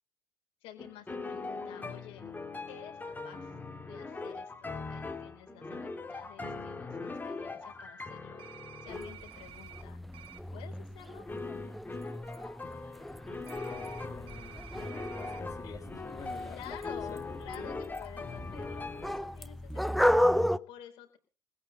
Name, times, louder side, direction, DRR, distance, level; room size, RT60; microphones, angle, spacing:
voice 1, 0.6-2.2 2.7-3.5 3.8-8.4 8.8-10.0 10.5-11.3 14.6-14.9 15.6-15.8 16.5-21.2, left 11 dB, 65° left, 4 dB, 4.8 m, -51 dB
sound 1, 0.8-9.2 11.2-19.2, left 3 dB, 15° left, 3.0 m, -41 dB
sound 2, 8.4-9.8 10.1-10.4 13.5-15.4, right 12 dB, 55° right, 1.3 m, -51 dB
sound 3, 8.9-20.6, equal, ahead, 0.7 m, -34 dB
voice 2, 13.7-17.9, left 5 dB, 35° left, 0 dB, 3.1 m, -48 dB
21.0 x 9.9 x 5.5 m, 0.37 s
hypercardioid pair, 65°, 10 cm